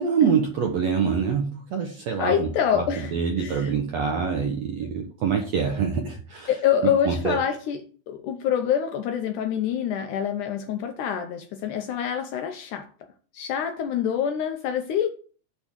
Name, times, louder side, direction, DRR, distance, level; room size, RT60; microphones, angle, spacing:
voice 1, 0.0-2.5 2.7-6.5 7.0-7.4, right 6 dB, 70° right, 1.6 m, -25 dB
voice 2, 2.2-3.7 6.5-12.9 13.3-15.1, left 8 dB, 85° left, 1.8 m, -26 dB
10.5 x 3.6 x 7.3 m
omnidirectional pair, 4.4 m